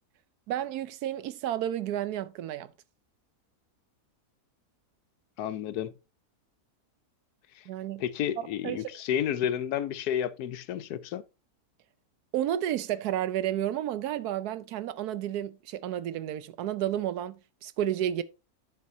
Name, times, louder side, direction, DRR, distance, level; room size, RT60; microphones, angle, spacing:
voice 1, 0.5-2.7 7.7-8.0 8.6-8.9 12.3-17.4 17.6-18.2, right 11 dB, 80° right, 1.2 m, -31 dB
voice 2, 5.4-5.9 7.6-7.7 8.0-11.2, left 10 dB, 80° left, 1.2 m, -31 dB
10.5 x 6.3 x 2.7 m
omnidirectional pair, 1.6 m